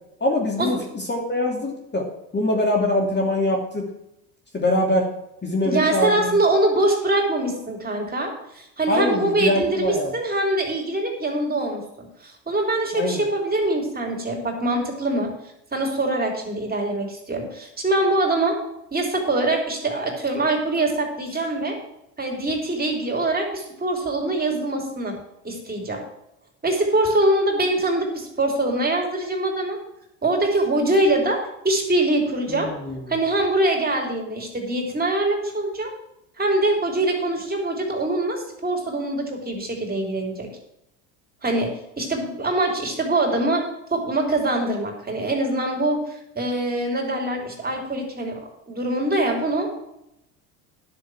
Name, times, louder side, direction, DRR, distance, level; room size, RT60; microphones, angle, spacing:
voice 1, 0.2-2.1 2.3-3.8 4.5-5.1 5.4-6.4 8.9-10.1 12.9-13.3 32.5-33.0, left 1 dB, 20° left, 0 dB, 2.7 m, -23 dB
voice 2, 5.6-15.3 15.7-18.6 18.9-21.8 22.2-25.2 25.4-26.0 26.6-29.8 30.2-31.4 31.6-32.7 33.1-35.9 36.4-40.5 41.4-43.6 43.9-48.4 48.7-49.7, right 2 dB, 20° right, 2 dB, 3.9 m, -23 dB
11.0 x 7.0 x 6.3 m, 0.83 s
hypercardioid pair, 80°, 47 cm